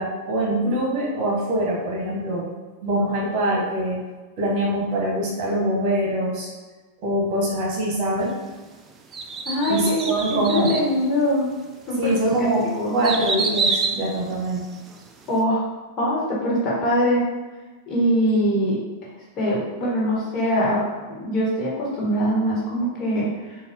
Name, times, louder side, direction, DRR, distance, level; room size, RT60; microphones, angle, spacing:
voice 1, 0.0-2.4 2.8-4.0 4.4-6.5 7.0-8.3 9.7-10.7 12.0-14.7, right 1 dB, 50° right, -4 dB, 1.4 m, -24 dB
sound 1, 9.1-10.9 11.5-11.6 12.2-15.0 15.3-15.4, right 4 dB, 25° right, 0.4 m, -27 dB
voice 2, 9.4-11.5 11.9-13.0 15.3-15.6 16.0-17.2 17.9-18.8 19.4-23.6, equal, 35° left, -5 dB, 1.5 m, -23 dB
4.0 x 2.6 x 3.0 m, 1.3 s
hypercardioid pair, 105°, 0 cm